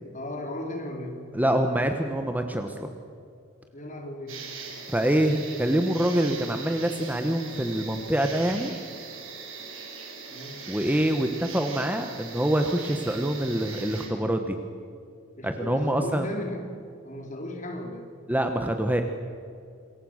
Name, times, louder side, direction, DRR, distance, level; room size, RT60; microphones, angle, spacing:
voice 1, 0.1-1.4 3.7-4.5 10.3-10.7 15.4-18.1, left 1 dB, 35° left, 2 dB, 4.0 m, -36 dB
voice 2, 1.3-2.9 4.9-8.7 10.7-14.6 15.4-16.3 18.3-19.0, right 1 dB, 10° right, 6 dB, 1.2 m, -25 dB
sound 1, 4.3-14.1, right 5 dB, 70° right, 5.1 m, -40 dB
27.0 x 22.5 x 6.5 m, 2.5 s
head